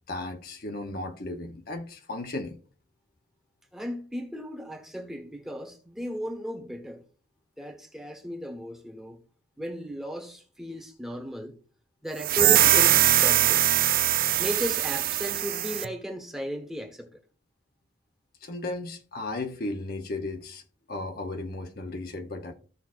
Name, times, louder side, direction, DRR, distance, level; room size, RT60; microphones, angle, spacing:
voice 1, 0.1-2.6 18.4-20.6 20.9-22.5, left 2 dB, 55° left, 0.9 m, -35 dB
voice 2, 3.7-7.0 7.6-9.2 9.6-11.6 12.0-13.6 14.4-17.2, equal, 5° right, 1.4 m, -35 dB
sound 1, 12.2-15.9, right 12 dB, 50° right, 0.4 m, -22 dB
15.0 x 5.9 x 2.5 m
head